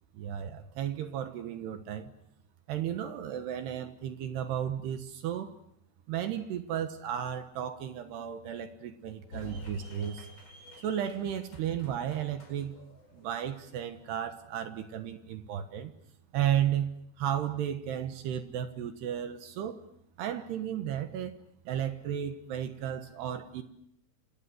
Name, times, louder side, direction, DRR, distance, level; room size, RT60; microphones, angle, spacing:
voice 1, 0.1-2.1 2.7-5.6 6.1-10.3 10.8-12.8 13.1-15.9 16.3-19.8 20.2-21.3 21.7-23.6, right 10 dB, 70° right, 8 dB, 3.0 m, -34 dB
sound 1, 9.3-14.4, left 1 dB, 25° left, 5.8 m, -50 dB
30.0 x 27.0 x 6.4 m, 0.73 s
omnidirectional pair, 5.7 m